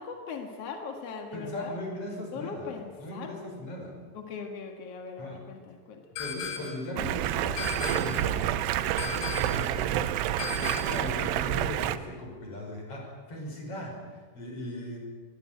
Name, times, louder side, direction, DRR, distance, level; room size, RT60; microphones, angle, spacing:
voice 1, 0.0-1.8 2.3-3.3 4.1-6.0, left 5 dB, 55° left, 4 dB, 1.7 m, -39 dB
voice 2, 1.3-2.7 3.0-4.0 5.2-5.4 6.2-10.1 10.6-15.0, left 1 dB, 30° left, 1 dB, 6.4 m, -38 dB
sound 1, 6.2-6.9 7.6-8.3 9.0-9.7 10.4-11.1, left 6 dB, 85° left, 5.2 m, -37 dB
Stream, 7.0-12.0, right 12 dB, 85° right, 3.4 m, -29 dB
24.0 x 20.0 x 9.2 m, 1.5 s
omnidirectional pair, 5.4 m